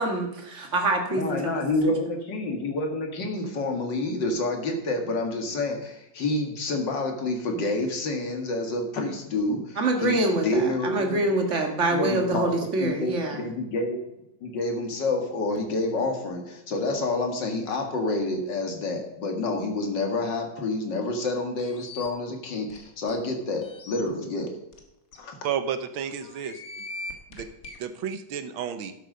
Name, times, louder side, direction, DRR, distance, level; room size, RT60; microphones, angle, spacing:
voice 1, 0.0-1.6 9.8-13.5, right 2 dB, 40° right, 3 dB, 2.0 m, -25 dB
voice 2, 1.1-11.2 11.9-12.5 12.8-14.0 14.4-24.5 25.2-25.4, left 2 dB, 65° left, 3 dB, 2.5 m, -28 dB
sound 1, 21.6-22.1 22.7-22.8 23.1-23.2 23.6-24.0 24.7-24.8 25.1-25.2 26.2-27.8, left 2 dB, 45° left, 1.9 m, -40 dB
voice 3, 25.4-26.6 27.3-27.5 27.8-28.9, right 8 dB, 90° right, 10 dB, 1.8 m, -31 dB
11.5 x 8.1 x 5.1 m, 0.90 s
omnidirectional pair, 2.1 m